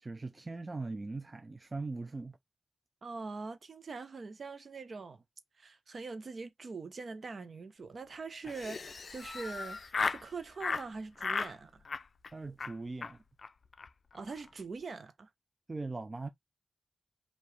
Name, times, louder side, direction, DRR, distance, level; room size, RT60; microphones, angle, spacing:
voice 1, 0.0-2.4 12.3-13.2 15.7-16.3, right 3 dB, 35° right, 0.5 m, -40 dB
voice 2, 3.0-5.2 5.6-11.8 14.1-15.3, right 4 dB, 60° right, 0.9 m, -43 dB
Laughter, 8.4-10.2 10.6-10.9 11.2-11.5 11.8-12.3 12.6-12.7 13.0-13.1 13.4-13.5 13.7-13.9 14.1-14.5, left 4 dB, 55° left, 0.4 m, -36 dB
4.8 x 2.7 x 3.2 m
cardioid pair, 60°, 0 cm